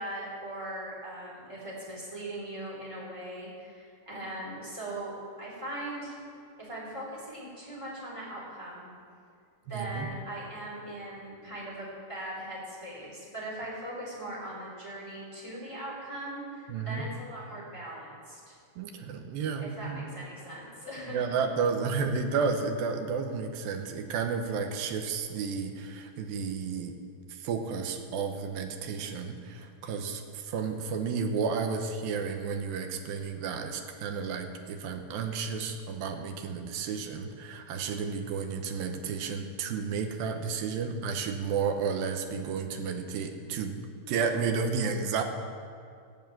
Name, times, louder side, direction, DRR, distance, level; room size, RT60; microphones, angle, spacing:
voice 1, 0.0-6.2 6.6-8.9 9.7-18.6 19.6-21.3, right 1 dB, 10° right, -7 dB, 3.1 m, -40 dB
voice 2, 9.7-10.1 16.7-17.1 18.8-20.1 21.1-26.9 27.3-43.8 44.1-45.2, right 5 dB, 75° right, 4 dB, 2.5 m, -32 dB
15.5 x 5.5 x 9.0 m, 2.3 s
omnidirectional pair, 4.7 m